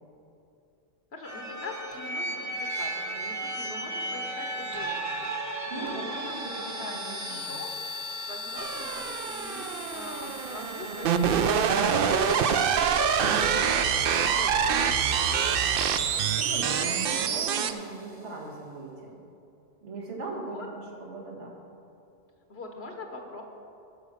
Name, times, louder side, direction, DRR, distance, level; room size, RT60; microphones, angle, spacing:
voice 1, 1.1-6.4 6.8-7.0 7.3-7.8 8.2-12.6 13.4-13.7 14.0-15.8 20.5-20.7 22.5-23.4, left 2 dB, 65° left, 3 dB, 1.3 m, -43 dB
sound 1, 1.2-18.0, right 1 dB, 15° right, 0.9 m, -37 dB
voice 2, 5.7-7.6 13.2-13.6 16.4-19.1 19.8-21.6, right 3 dB, 90° right, -3 dB, 2.2 m, -38 dB
sound 2, 8.6-17.7, right 7 dB, 60° right, 0.7 m, -26 dB
13.0 x 5.0 x 6.5 m, 2.7 s
omnidirectional pair, 1.2 m